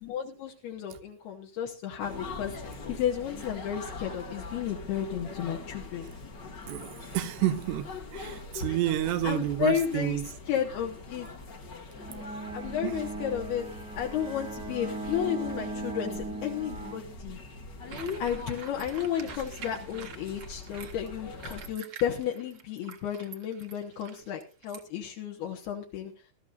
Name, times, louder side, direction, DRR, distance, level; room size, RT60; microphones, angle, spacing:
voice 1, 0.0-6.3 9.2-10.2 10.5-11.3 12.5-13.7 14.0-17.4 18.2-26.1, left 9 dB, 70° left, 3.1 m, -33 dB
sound 1, 2.0-21.7, left 3 dB, 45° left, 1.5 m, -42 dB
voice 2, 6.7-10.3 12.8-13.1, right 12 dB, 75° right, 3.2 m, -30 dB
Bowed string instrument, 11.9-17.7, right 2 dB, 5° right, 0.4 m, -39 dB
sound 2, 17.9-24.8, right 7 dB, 55° right, 1.8 m, -47 dB
19.5 x 13.0 x 2.5 m
omnidirectional pair, 5.0 m